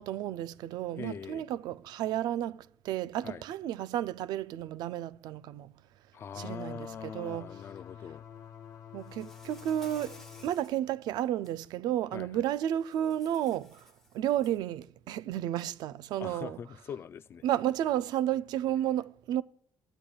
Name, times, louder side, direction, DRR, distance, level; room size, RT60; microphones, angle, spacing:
voice 1, 0.0-5.7 6.4-7.5 8.9-16.6 17.4-19.4, right 11 dB, 80° right, 0.4 m, -32 dB
voice 2, 0.9-1.4 3.2-3.4 6.1-8.2 12.1-12.3 16.2-17.4, left 7 dB, 35° left, 0.3 m, -42 dB
sound 1, 6.3-10.5, left 9 dB, 50° left, 1.0 m, -48 dB
Insect, 9.0-10.8 11.3-11.5 12.8-14.7, left 1 dB, 5° left, 0.9 m, -56 dB
14.5 x 10.0 x 2.3 m
cardioid pair, 170°, 7 cm